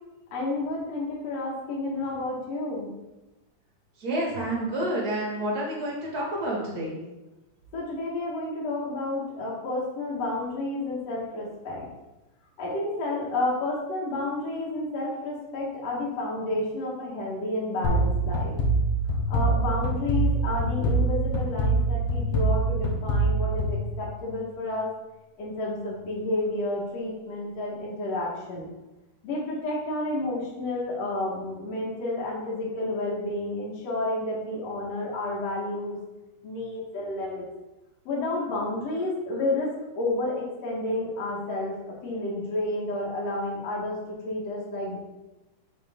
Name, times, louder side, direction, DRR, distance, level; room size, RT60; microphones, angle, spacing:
voice 1, 0.3-2.9 7.7-11.9 12.6-18.5 19.3-24.9 25.4-28.7 29.2-36.0 36.4-37.4 38.1-39.7 40.0-41.7 42.0-45.0, left 2 dB, 55° left, -5 dB, 2.4 m, -30 dB
voice 2, 4.0-7.0, right 1 dB, 35° right, -4 dB, 1.7 m, -29 dB
sound 1, 17.8-24.5, right 2 dB, 80° left, 2.5 m, -25 dB
6.4 x 6.2 x 3.6 m, 1.0 s
omnidirectional pair, 4.1 m